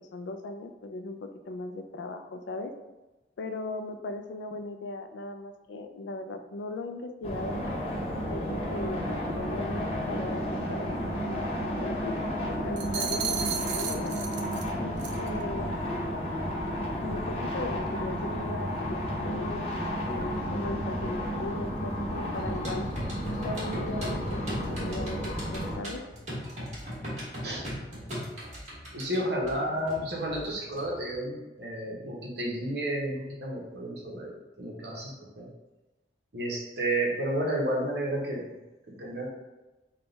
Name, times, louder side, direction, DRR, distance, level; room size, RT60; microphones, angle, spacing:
voice 1, 0.0-2.7 3.4-7.6 8.3-11.5 11.8-14.1 14.8-15.8 17.0-19.7 20.1-22.9 23.4-26.0, left 2 dB, 80° left, 7 dB, 0.3 m, -38 dB
sound 1, 7.2-25.8, equal, 35° left, 0.7 m, -32 dB
sound 2, 12.8-14.7 15.0-15.3, right 8 dB, 80° right, 0.4 m, -33 dB
sound 3, 22.3-31.2, equal, 40° right, 1.4 m, -39 dB
voice 2, 28.9-34.3 34.6-35.5 36.3-38.6 38.9-39.3, right 1 dB, 65° right, -2 dB, 0.9 m, -31 dB
3.6 x 2.2 x 3.9 m, 1.1 s
head